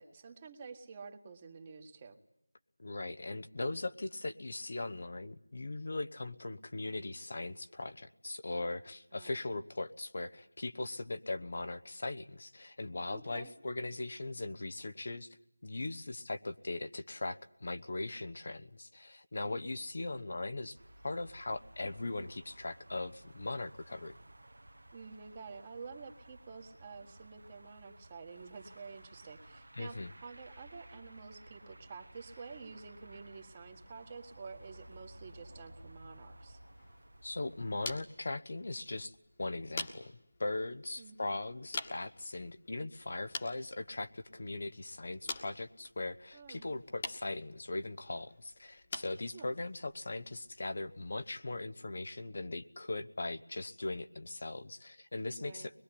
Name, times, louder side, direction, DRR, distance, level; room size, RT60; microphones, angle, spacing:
voice 1, 0.0-2.2 9.1-9.4 13.1-13.5 24.9-36.6 41.0-41.3 46.3-46.7 49.3-49.5 55.4-55.7, right 5 dB, 20° right, 6 dB, 1.7 m, -49 dB
voice 2, 2.8-15.3 15.6-20.8 21.0-24.1 29.8-30.1 37.2-40.1 40.4-55.8, left 2 dB, 50° left, 9 dB, 1.0 m, -39 dB
sound 1, 20.7-37.8, right 1 dB, 75° right, 1.4 m, -56 dB
sound 2, 36.6-51.6, left 3 dB, 20° left, 1.6 m, -48 dB
24.0 x 21.5 x 10.0 m, 0.81 s
figure-of-eight pair, 175°, 0 cm